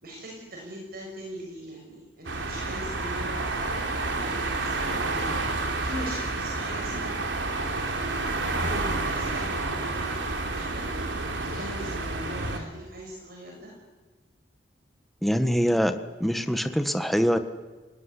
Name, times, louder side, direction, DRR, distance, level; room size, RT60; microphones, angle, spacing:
voice 1, 0.0-5.5 5.8-10.2 10.5-13.7, equal, 55° right, -1 dB, 6.5 m, -41 dB
sound 1, 2.3-12.6, right 2 dB, 85° right, 3.6 m, -29 dB
voice 2, 15.2-17.4, equal, ahead, 8 dB, 1.6 m, -24 dB
29.0 x 19.5 x 10.0 m, 1.3 s
head